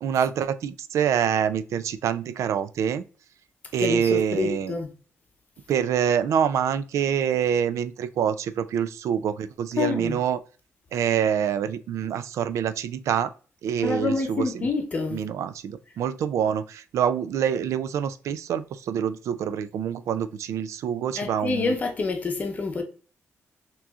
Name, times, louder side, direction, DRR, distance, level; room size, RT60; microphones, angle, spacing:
voice 1, 0.0-3.1 3.7-4.8 5.7-10.4 10.9-13.3 13.6-14.7 15.1-21.7, right 8 dB, 80° right, 0.3 m, -26 dB
voice 2, 3.8-4.9 9.8-10.2 13.8-15.3 21.2-22.8, left 4 dB, 30° left, 0.8 m, -27 dB
6.0 x 3.0 x 2.4 m
wide cardioid pair, 175°, 5 cm